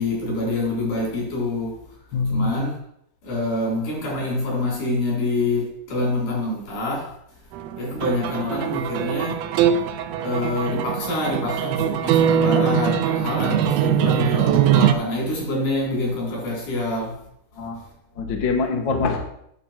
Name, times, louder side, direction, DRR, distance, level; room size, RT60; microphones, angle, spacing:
voice 1, 0.0-1.8 2.3-2.8 3.2-7.1 7.8-9.4 10.2-17.2, left 2 dB, 85° left, -4 dB, 5.6 m, -26 dB
voice 2, 2.1-2.6 17.6-17.8 18.2-19.2, left 4 dB, 55° left, 2 dB, 1.5 m, -24 dB
sound 1, 7.5-14.9, right 9 dB, 85° right, 1.4 m, -22 dB
8.8 x 7.3 x 4.4 m, 0.73 s
omnidirectional pair, 3.6 m